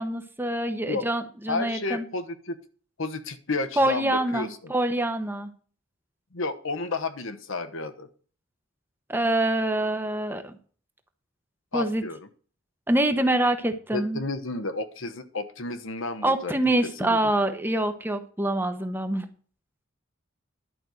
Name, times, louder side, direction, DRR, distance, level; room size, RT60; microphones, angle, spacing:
voice 1, 0.0-2.1 3.8-5.5 9.1-10.5 11.7-12.0 12.9-14.2 16.2-19.3, right 1 dB, 10° right, 7 dB, 0.9 m, -25 dB
voice 2, 1.5-2.6 3.0-4.7 6.3-8.1 11.7-12.2 13.9-16.5 17.0-17.2, left 3 dB, 70° left, 9 dB, 1.1 m, -31 dB
11.0 x 5.3 x 7.9 m, 0.43 s
head